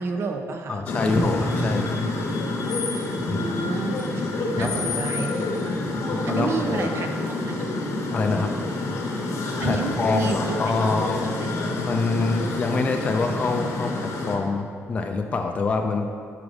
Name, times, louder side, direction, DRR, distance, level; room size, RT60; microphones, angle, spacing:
voice 1, 0.0-0.8 3.2-5.5 6.2-7.1 7.5-7.8 9.6-11.0 11.4-11.5, right 4 dB, 50° right, 5 dB, 0.5 m, -30 dB
voice 2, 0.7-1.9 3.3-3.4 4.6-4.9 6.1-6.9 8.1-8.5 9.6-11.2 11.8-16.1, left 3 dB, 25° left, 4 dB, 0.3 m, -25 dB
sound 1, 0.9-14.4, left 2 dB, 55° left, 0.8 m, -28 dB
5.0 x 5.0 x 4.8 m, 2.2 s
cardioid pair, 175°, 6 cm